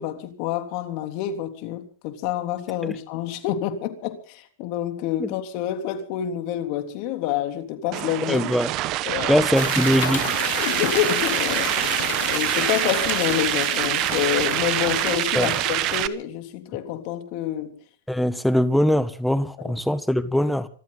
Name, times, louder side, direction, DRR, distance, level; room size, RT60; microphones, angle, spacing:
voice 1, 0.0-8.5 9.0-9.3 10.6-11.7 12.2-17.8 19.6-19.8, left 11 dB, 50° left, 3.4 m, -28 dB
sound 1, 7.9-16.1, right 16 dB, 40° right, 1.2 m, -25 dB
voice 2, 8.3-8.7 9.3-10.2 15.3-15.5 18.1-20.7, equal, ahead, 1.6 m, -21 dB
sound 2, 9.5-16.1, left 15 dB, 70° left, 0.9 m, -32 dB
26.0 x 13.5 x 4.1 m
hypercardioid pair, 135°, 0 cm